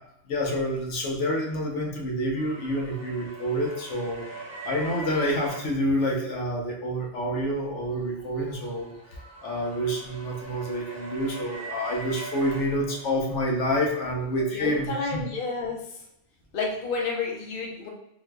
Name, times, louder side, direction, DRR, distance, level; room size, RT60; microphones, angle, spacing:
voice 1, 0.3-4.3 4.6-15.2, equal, 85° left, -1 dB, 1.0 m, -28 dB
sound 1, 2.4-5.6 8.0-13.5, right 3 dB, 60° right, 0.9 m, -41 dB
voice 2, 14.5-16.0 16.5-17.9, left 4 dB, 55° left, -1 dB, 0.8 m, -30 dB
3.8 x 2.6 x 2.2 m, 0.78 s
omnidirectional pair, 1.2 m